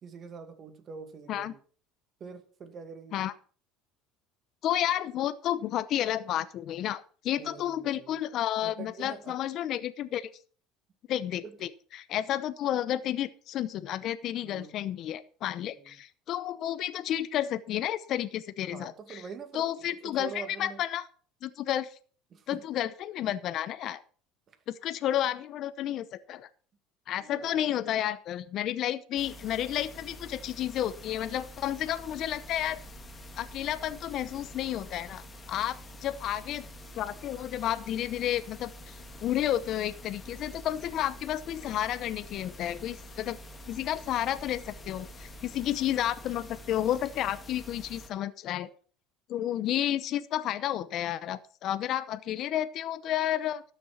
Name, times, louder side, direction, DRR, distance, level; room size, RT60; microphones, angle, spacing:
voice 1, 0.0-1.6 2.2-3.2 7.4-8.1 8.6-9.4 11.4-11.5 14.4-14.8 15.7-16.0 18.7-19.7 20.0-20.8 22.3-22.6 24.5-24.6 27.2-27.8, right 6 dB, 35° right, 8 dB, 2.0 m, -44 dB
voice 2, 4.6-10.3 11.1-19.2 19.5-21.1 21.4-22.0 22.5-24.0 24.7-26.5 27.1-32.8 33.4-36.7 36.9-43.4 43.7-48.7 49.3-53.6, left 12 dB, 50° left, 14 dB, 0.7 m, -31 dB
sound 1, 29.2-48.1, equal, 20° left, 1.6 m, -47 dB
12.5 x 6.9 x 6.0 m, 0.43 s
supercardioid pair, 125°, 0 cm